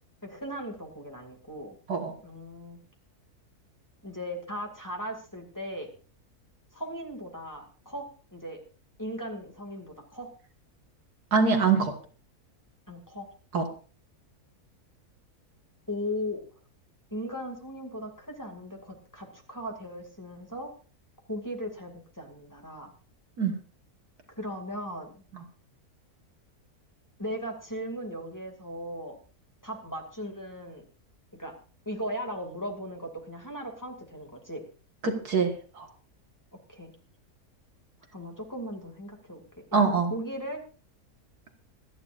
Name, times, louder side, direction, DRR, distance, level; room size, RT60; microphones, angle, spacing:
voice 1, 0.2-1.8 2.2-2.8 4.0-5.9 6.7-8.6 9.0-10.3 12.9-13.3 15.9-16.4 17.1-20.7 21.3-22.9 24.4-25.2 27.2-29.1 29.6-30.8 31.4-31.5 31.9-34.6 36.7-36.9 38.1-40.6, equal, 10° left, 1 dB, 2.4 m, -37 dB
voice 2, 11.3-12.0 13.5-13.7 23.4-23.5 35.0-35.9 39.7-40.1, right 5 dB, 80° right, 4 dB, 2.3 m, -24 dB
25.5 x 10.0 x 2.6 m, 0.38 s
omnidirectional pair, 1.6 m